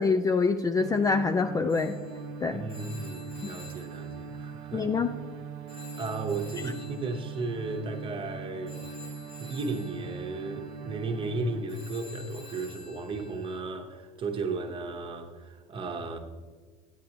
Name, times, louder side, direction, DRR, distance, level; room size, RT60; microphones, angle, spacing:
voice 1, 0.0-2.0 2.4-2.6 4.7-5.1, left 4 dB, 20° left, 0.4 m, -25 dB
sound 1, 0.8-11.6, right 6 dB, 80° right, 0.6 m, -41 dB
Telephone, 1.7-5.3 5.7-13.6, left 3 dB, 90° left, 2.6 m, -51 dB
voice 2, 2.5-4.9 6.0-8.8 9.4-16.2, right 3 dB, 30° right, 1.0 m, -35 dB
9.1 x 8.4 x 2.9 m
supercardioid pair, 95°, 17 cm